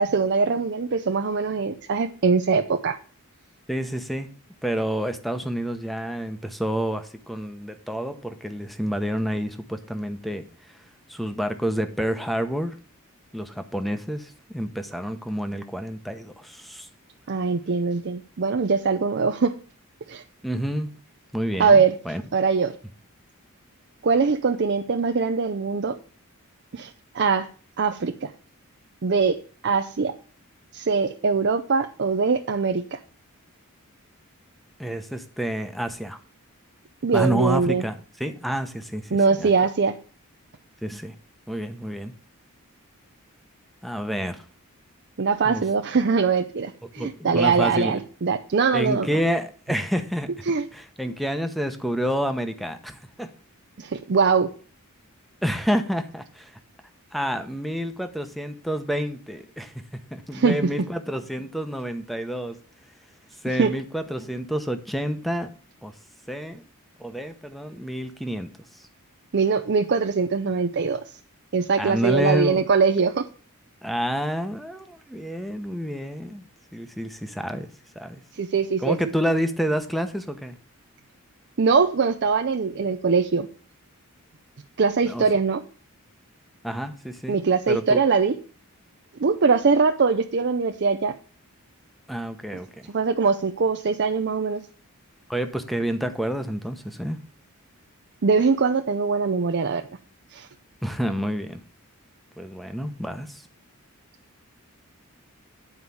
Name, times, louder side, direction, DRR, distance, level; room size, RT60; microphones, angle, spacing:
voice 1, 0.0-3.0 17.3-19.5 20.1-20.2 21.6-21.9 22.3-22.8 24.0-26.0 26.7-27.5 27.8-28.3 29.0-29.4 29.6-30.1 30.7-33.0 37.0-37.8 39.1-40.0 45.2-49.1 50.5-50.6 53.8-54.5 60.3-60.6 63.6-63.7 69.3-71.0 71.5-73.2 78.3-79.0 81.6-83.5 84.8-85.6 87.3-88.3 89.2-91.1 92.9-94.6 98.2-99.8 100.3-100.5, right 5 dB, 50° right, 7 dB, 0.5 m, -22 dB
voice 2, 3.7-4.3 4.6-10.4 11.1-12.7 13.3-16.9 20.4-20.9 21.3-22.2 34.8-36.2 37.1-39.5 40.8-41.1 41.5-42.1 43.8-44.4 45.4-45.6 47.0-48.0 48.7-50.3 50.7-53.3 55.4-56.6 57.1-59.8 60.1-62.6 63.4-65.5 65.8-65.9 66.3-66.6 67.0-68.5 71.8-72.7 73.8-76.5 76.7-77.7 77.9-78.2 78.8-80.6 85.0-85.2 86.6-87.4 87.7-88.0 92.1-92.9 95.3-97.2 100.8-101.6 102.4-103.4, equal, ahead, 8 dB, 0.8 m, -28 dB
9.6 x 4.7 x 7.0 m, 0.41 s
head